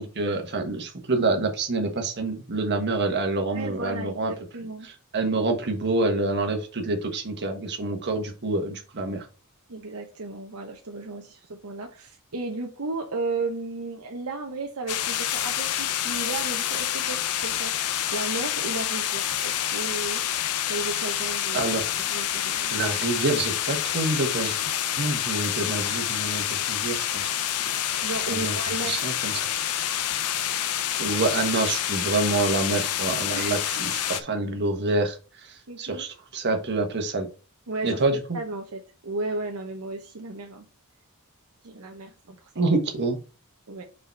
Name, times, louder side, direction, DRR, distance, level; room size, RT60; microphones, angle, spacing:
voice 1, 0.0-4.3 4.8-9.3 21.5-21.9 22.7-24.6 25.0-27.3 28.3-29.7 31.0-37.3 37.8-38.4 42.5-43.2, right 2 dB, 50° right, 1.3 m, -27 dB
voice 2, 3.5-4.9 9.7-20.2 20.7-21.7 22.1-22.7 27.6-27.8 28.0-28.9 33.3-33.6 35.7-36.0 37.7-38.0 38.3-40.7 41.6-42.7 43.7-43.8, right 3 dB, 70° right, 0.9 m, -34 dB
sound 1, 14.9-34.2, left 11 dB, 80° left, 0.6 m, -28 dB
4.9 x 4.9 x 4.5 m
head